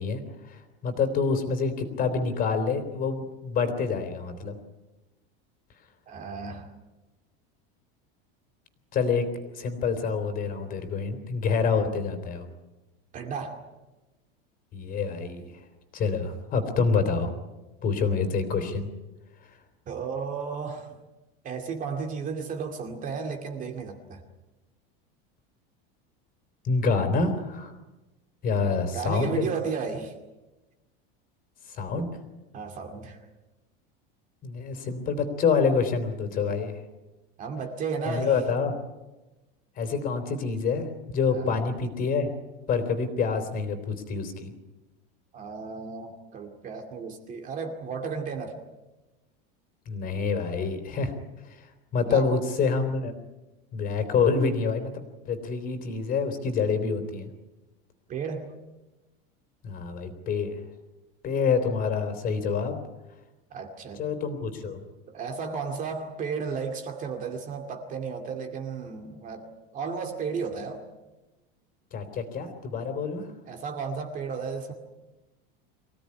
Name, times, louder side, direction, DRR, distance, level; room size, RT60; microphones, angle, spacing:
voice 1, 0.0-4.6 8.9-9.3 9.5-12.5 14.7-15.5 15.9-17.3 17.8-18.9 26.6-27.7 28.4-29.5 31.7-32.1 34.4-36.8 38.1-38.8 39.8-42.3 42.7-44.5 49.9-51.1 51.5-51.7 51.9-53.1 53.7-57.3 59.6-60.6 61.2-62.8 64.0-64.8 71.9-73.3, left 5 dB, 30° left, 7 dB, 3.6 m, -27 dB
voice 2, 6.1-6.7 13.1-13.6 19.9-20.9 21.4-24.2 28.9-30.1 32.0-32.1 32.5-33.2 37.4-38.4 41.3-41.5 45.3-48.6 52.0-52.5 58.1-58.5 63.5-64.0 65.1-69.5 69.7-70.8 73.5-74.7, right 5 dB, 25° right, 5 dB, 2.4 m, -33 dB
25.0 x 17.0 x 9.9 m, 1.1 s
supercardioid pair, 165°, 29 cm